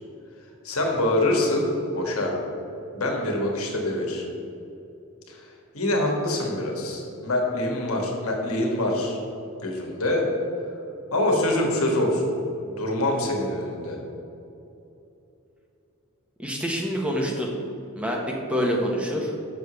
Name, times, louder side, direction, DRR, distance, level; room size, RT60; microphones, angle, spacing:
voice 1, 0.6-2.4 2.9-4.2 5.3-5.4 5.7-9.2 9.6-10.3 11.1-12.3 12.6-14.0, left 1 dB, 85° left, 0 dB, 1.5 m, -25 dB
voice 2, 16.4-17.5 18.0-19.3, equal, 5° right, -1 dB, 0.9 m, -26 dB
6.9 x 4.9 x 6.8 m, 2.8 s
head